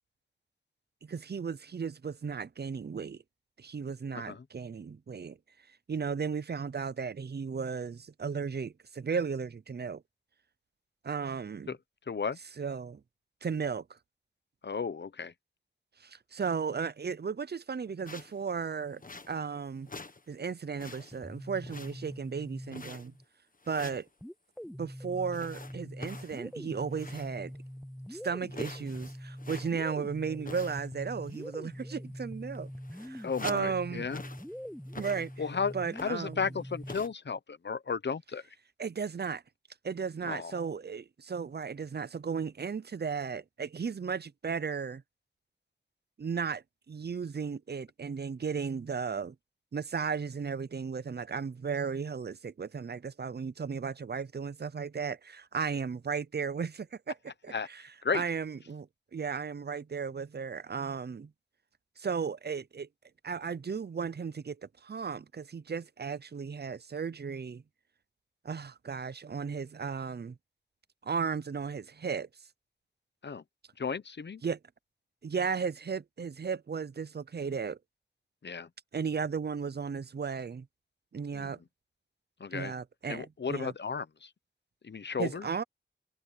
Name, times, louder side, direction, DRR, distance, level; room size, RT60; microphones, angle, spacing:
voice 1, 1.0-3.2 3.6-5.4 5.9-10.0 11.0-11.7 12.6-13.0 13.4-14.0 16.0-19.0 19.3-19.9 20.3-23.2 23.7-24.1 24.8-27.5 28.1-32.7 33.0-34.1 35.0-35.3 35.7-36.4 38.8-39.4 39.8-45.0 46.2-49.3 49.7-57.2 57.4-57.8 58.1-61.3 62.0-62.9 63.2-67.6 68.4-70.4 71.0-72.3 74.4-74.6 75.2-77.8 78.9-80.7 81.1-81.6 82.5-83.7 85.2-85.6, right 6 dB, 60° right, 0.6 m, -35 dB
voice 2, 4.1-4.4 11.7-11.8 12.1-12.4 14.6-15.3 33.2-34.2 35.4-35.8 36.0-38.4 40.2-40.5 57.5-57.7 58.0-58.2 73.2-73.4 73.8-74.4 78.4-78.7 81.3-81.5 82.4-82.7 83.1-84.3 84.8-85.5, left 5 dB, 70° left, 0.8 m, -34 dB
sound 1, 18.1-18.4 19.0-19.6 19.9-20.3 20.5-21.3 21.7-22.2 22.7-23.2 23.6-24.1 25.3-27.5 27.8-27.9 28.3-29.9 30.4-31.0 31.3-31.6 32.2-32.3 32.6-33.7 34.1-34.5 34.9-35.5 35.9-36.4 36.9-37.1, left 3 dB, 45° left, 1.3 m, -46 dB
sound 2, 21.1-23.2 24.2-37.1, equal, ahead, 0.5 m, -44 dB
wide cardioid pair, 65°, 19 cm